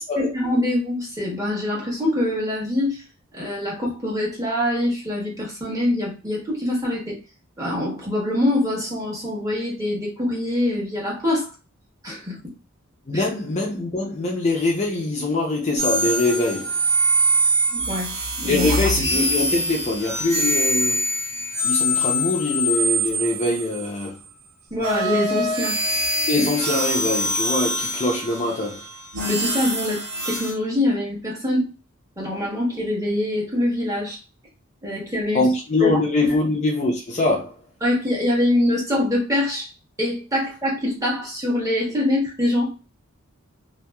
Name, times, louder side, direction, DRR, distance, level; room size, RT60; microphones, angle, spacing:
voice 1, 0.2-3.0 3.3-7.2 7.6-11.5 12.0-12.4 13.1-13.2 17.7-18.9 24.7-25.8 26.4-26.5 29.2-31.7 32.2-34.2 34.8-35.5 35.8-36.4 37.8-39.7 40.0-42.9, left 1 dB, 15° right, 1.2 m, -24 dB
voice 2, 13.1-16.7 18.5-21.0 21.6-24.2 26.3-28.8 35.3-37.6, left 2 dB, 30° left, 0.5 m, -23 dB
sound 1, 15.8-24.1 24.8-30.5, equal, 75° right, 1.4 m, -24 dB
3.0 x 2.7 x 2.2 m
head